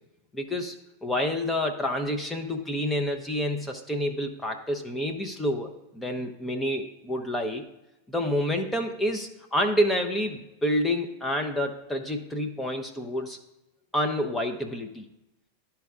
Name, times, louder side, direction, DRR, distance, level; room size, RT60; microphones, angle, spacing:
voice 1, 0.3-7.6 8.1-13.4 13.9-15.0, left 1 dB, 10° left, 4 dB, 0.7 m, -28 dB
12.0 x 4.5 x 2.4 m, 0.96 s
figure-of-eight pair, 90°, 0 cm